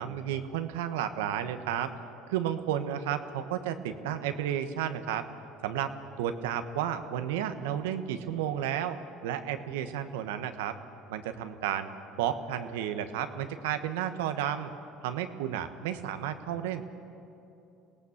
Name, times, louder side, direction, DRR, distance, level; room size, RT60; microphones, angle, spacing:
voice 1, 0.0-1.9 2.3-5.2 5.6-9.0 9.2-10.8 11.1-14.7 15.0-16.8, right 10 dB, 85° right, 9 dB, 1.3 m, -32 dB
25.5 x 18.0 x 7.2 m, 2.8 s
hypercardioid pair, 80°, 0 cm